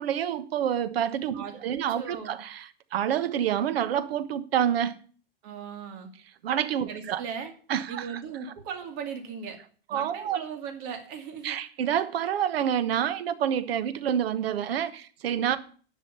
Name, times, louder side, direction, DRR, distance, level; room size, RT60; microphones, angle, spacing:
voice 1, 0.0-2.6 2.9-5.0 6.4-7.2 7.7-8.2 9.9-10.4 11.4-15.6, right 9 dB, 80° right, 1.3 m, -28 dB
voice 2, 1.3-2.4 5.4-6.1 6.9-7.5 7.9-9.6 9.9-11.6 15.5-15.6, right 7 dB, 45° right, 2.5 m, -38 dB
11.0 x 6.3 x 6.9 m
supercardioid pair, 155°, 29 cm